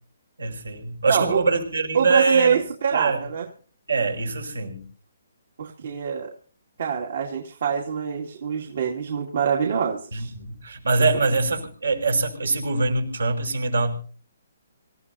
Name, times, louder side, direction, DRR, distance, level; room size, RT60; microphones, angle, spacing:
voice 1, 0.4-2.6 2.9-3.2 3.9-4.8 10.1-13.9, right 3 dB, 85° right, 3 dB, 5.5 m, -23 dB
voice 2, 1.1-1.4 1.9-3.5 5.6-6.3 6.8-10.3, right 7 dB, 60° right, 0 dB, 2.4 m, -25 dB
26.0 x 15.0 x 2.8 m, 0.42 s
hypercardioid pair, 145°, 0 cm